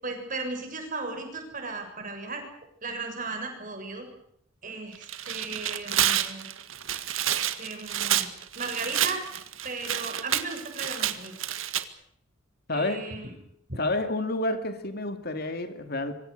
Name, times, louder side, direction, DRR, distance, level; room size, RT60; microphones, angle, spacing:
voice 1, 0.0-2.5 2.8-4.1 4.6-6.5 7.5-8.3 8.6-9.3 9.6-11.3 12.7-13.3, right 3 dB, 40° right, 5 dB, 7.2 m, -36 dB
Tearing, 4.9-11.8, right 11 dB, 80° right, 1.9 m, -29 dB
voice 2, 13.8-16.1, left 2 dB, 50° left, 8 dB, 2.6 m, -29 dB
27.0 x 24.0 x 6.8 m, 0.70 s
head